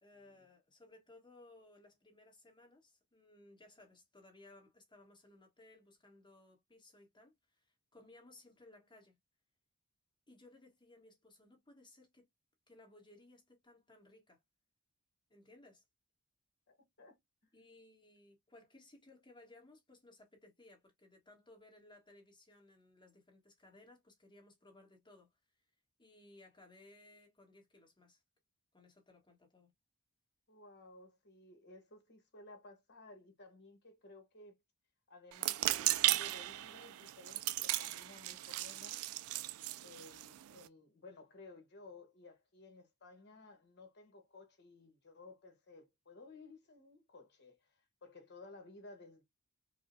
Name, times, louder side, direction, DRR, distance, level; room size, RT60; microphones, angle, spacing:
voice 1, 0.0-9.1 10.3-12.3 12.7-14.4 15.3-15.8 17.5-25.3 26.0-28.2 28.7-29.7, left 2 dB, 20° left, 1.4 m, -61 dB
voice 2, 16.7-17.2 30.5-34.6 35.1-39.0 39.8-47.7 48.0-49.2, left 2 dB, 50° left, 1.2 m, -56 dB
sound 1, 35.3-40.7, right 15 dB, 70° right, 0.3 m, -36 dB
4.8 x 2.1 x 2.6 m
head